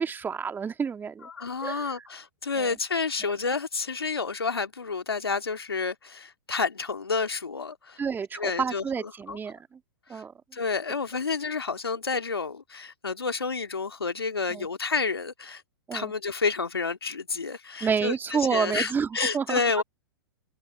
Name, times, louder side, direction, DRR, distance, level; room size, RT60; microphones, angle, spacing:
voice 1, 0.0-1.3 1.6-1.9 2.6-2.7 3.2-3.3 8.0-9.8 10.1-10.3 14.5-14.7 15.9-16.1 17.8-19.6, right 6 dB, 15° right, 1.7 m, -29 dB
voice 2, 1.2-8.0 8.3-9.4 10.1-10.2 10.5-15.6 15.9-19.8, left 4 dB, 90° left, 2.0 m, -30 dB
hypercardioid pair, 110°, 12 cm